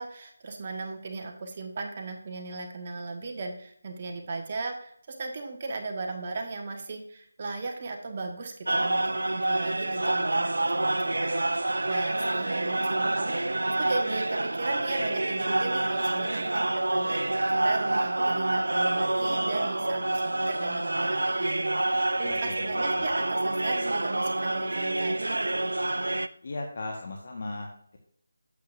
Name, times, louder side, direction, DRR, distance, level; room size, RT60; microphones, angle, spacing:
voice 1, 0.0-25.4, right 3 dB, 35° right, 2 dB, 1.3 m, -37 dB
sound 1, 8.7-26.3, right 2 dB, 80° right, 0.5 m, -27 dB
voice 2, 22.2-23.1 26.4-28.0, left 2 dB, 50° left, 0 dB, 1.3 m, -38 dB
8.6 x 8.4 x 2.6 m, 0.65 s
figure-of-eight pair, 165°, 0 cm